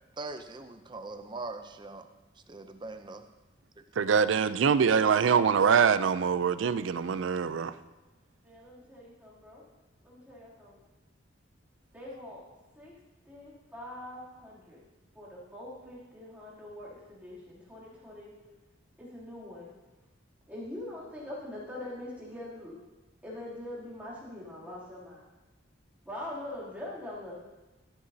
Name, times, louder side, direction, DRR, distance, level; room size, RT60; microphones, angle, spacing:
voice 1, 0.2-2.1 2.5-3.2, right 3 dB, 25° right, 0.5 m, -41 dB
voice 2, 4.0-7.7, right 6 dB, 75° right, 0.4 m, -24 dB
voice 3, 8.4-9.6 10.0-10.8 11.9-12.5 12.7-12.9 13.3-14.8 15.1-18.4 19.0-19.7 20.5-22.7 23.2-25.3 26.0-27.3, left 1 dB, 5° right, 2.8 m, -43 dB
13.5 x 9.5 x 2.8 m
head